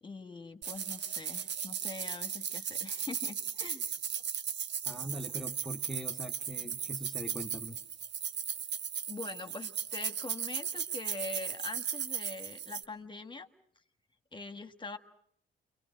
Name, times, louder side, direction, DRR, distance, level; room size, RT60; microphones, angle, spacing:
voice 1, 0.0-3.9 9.1-13.5 14.3-15.0, left 3 dB, 25° left, 7 dB, 1.5 m, -43 dB
sound 1, 0.6-12.8, right 8 dB, 65° right, 1.1 m, -37 dB
voice 2, 4.9-7.8, equal, ahead, 0 dB, 1.2 m, -42 dB
28.5 x 24.0 x 6.3 m, 0.67 s
cardioid pair, 90°, 20 cm